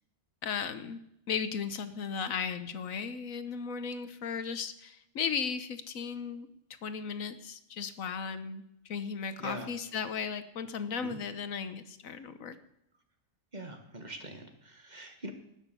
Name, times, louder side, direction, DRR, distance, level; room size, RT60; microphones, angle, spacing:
voice 1, 0.4-1.0 1.3-6.5 6.8-12.6, left 6 dB, 85° left, 11 dB, 1.4 m, -36 dB
voice 2, 13.5-15.3, right 1 dB, 35° right, 5 dB, 1.7 m, -43 dB
19.5 x 6.5 x 6.9 m, 0.79 s
omnidirectional pair, 1.4 m